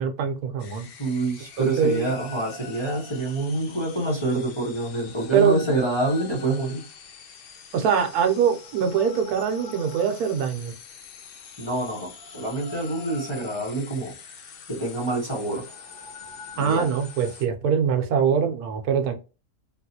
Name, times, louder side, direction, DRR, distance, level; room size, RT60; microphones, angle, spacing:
voice 1, 0.0-0.9 1.6-2.1 5.3-5.6 7.7-10.7 16.6-19.1, right 7 dB, 80° right, 1.1 m, -23 dB
sound 1, 0.6-17.5, left 5 dB, 70° left, 0.5 m, -44 dB
voice 2, 1.0-6.8 11.6-14.1 14.7-15.7 16.6-16.9, right 2 dB, 20° left, 0.9 m, -27 dB
3.8 x 2.3 x 2.7 m
omnidirectional pair, 1.6 m